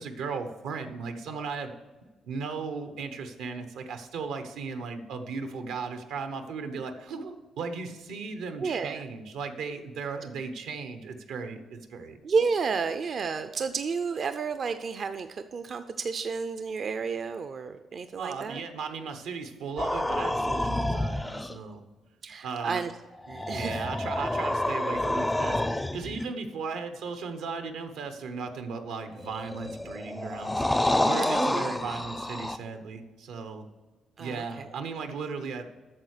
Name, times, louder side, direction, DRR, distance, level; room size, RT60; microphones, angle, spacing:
voice 1, 0.0-1.7 2.2-12.2 18.2-21.8 22.4-22.8 23.5-25.6 25.9-30.6 31.0-33.7 34.2-35.7, right 5 dB, 85° right, 8 dB, 1.0 m, -36 dB
voice 2, 8.6-9.0 12.2-18.6 20.6-20.9 22.2-22.9 23.3-23.8 31.3-31.6 34.2-34.7, right 5 dB, 50° right, 9 dB, 0.5 m, -31 dB
sound 1, 19.8-21.6 23.1-26.3 29.2-32.6, left 1 dB, 10° left, 0.4 m, -28 dB
8.9 x 6.5 x 6.5 m, 1.2 s
cardioid pair, 90°, 0 cm